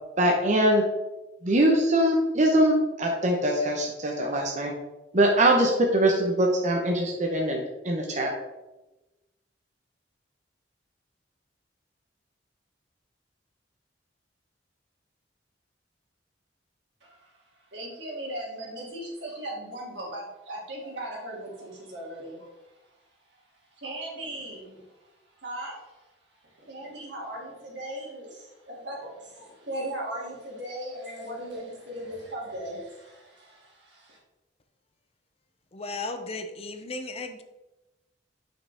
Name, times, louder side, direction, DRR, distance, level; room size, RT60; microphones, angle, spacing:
voice 1, 0.2-0.8 1.4-4.7 5.1-8.3, right 1 dB, 40° right, 0 dB, 1.0 m, -22 dB
voice 2, 17.7-22.5 23.8-24.8 25.4-25.8 26.7-34.2, right 1 dB, 80° right, -3 dB, 2.7 m, -38 dB
voice 3, 35.7-37.4, left 3 dB, 35° left, 7 dB, 0.6 m, -35 dB
8.3 x 5.8 x 3.5 m, 1.0 s
head